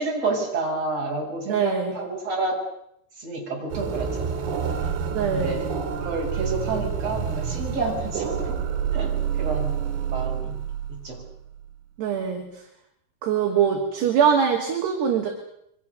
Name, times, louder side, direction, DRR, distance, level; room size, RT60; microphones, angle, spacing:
voice 1, 0.0-2.6 3.2-4.5 5.3-5.7 6.0-8.6 8.9-9.8 10.1-10.6 10.9-11.2, right 3 dB, 30° right, -1 dB, 7.4 m, -29 dB
voice 2, 1.5-1.9 5.1-5.6 12.0-12.5 13.2-15.3, right 7 dB, 60° right, 2 dB, 4.2 m, -22 dB
sound 1, 3.7-11.6, right 7 dB, 80° right, 6.1 m, -28 dB
28.5 x 24.0 x 6.8 m, 0.76 s
omnidirectional pair, 5.7 m